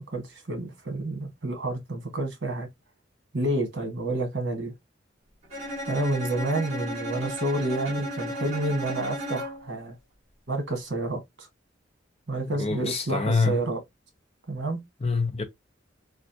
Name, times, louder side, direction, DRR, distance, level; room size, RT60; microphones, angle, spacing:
voice 1, 0.0-2.7 3.3-4.7 5.9-9.9 10.5-11.5 12.3-13.8 14.5-14.8, right 2 dB, 65° right, 1.3 m, -29 dB
Bowed string instrument, 5.5-9.8, equal, 35° right, 1.9 m, -34 dB
voice 2, 12.6-13.6 15.0-15.4, left 4 dB, 30° left, 0.6 m, -25 dB
3.3 x 2.4 x 2.6 m
head